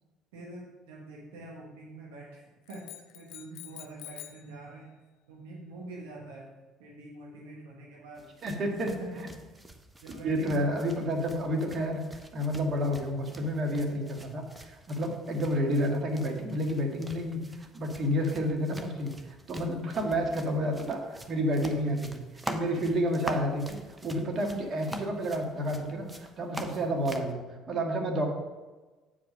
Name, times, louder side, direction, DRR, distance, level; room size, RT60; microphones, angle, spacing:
voice 1, 0.3-5.0 5.3-6.5 6.8-8.3 8.8-9.3 10.0-10.7, right 2 dB, 80° right, -1 dB, 1.1 m, -44 dB
sound 1, 2.7-4.5, left 15 dB, 70° left, 0.5 m, -46 dB
sound 2, 8.2-27.3, right 1 dB, 15° right, 0.9 m, -45 dB
voice 2, 8.4-8.9 10.2-12.0 12.3-26.1 26.4-28.2, equal, 50° right, 2 dB, 1.7 m, -30 dB
8.5 x 5.0 x 5.4 m, 1.2 s
hypercardioid pair, 65°, 0 cm